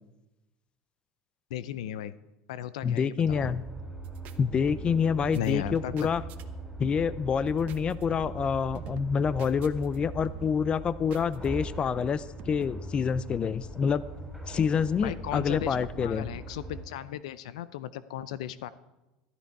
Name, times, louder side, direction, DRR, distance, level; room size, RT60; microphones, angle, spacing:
voice 1, 1.5-2.1 2.5-3.5 5.3-6.1 15.0-18.7, left 11 dB, 85° left, 16 dB, 0.5 m, -36 dB
voice 2, 2.8-3.6 4.4-6.2 6.8-14.0 14.5-16.3, left 6 dB, 30° left, 18 dB, 0.5 m, -27 dB
sound 1, 3.2-16.8, right 3 dB, ahead, 3.8 m, -41 dB
sound 2, 4.0-4.4 4.7-5.1 5.3-6.4 6.8-7.2 7.5-8.5 8.7-10.0 10.2-10.6 11.1-11.9 12.4-12.7, right 9 dB, 55° right, 1.0 m, -47 dB
13.0 x 12.5 x 4.7 m, 1.0 s
supercardioid pair, 105°, 3 cm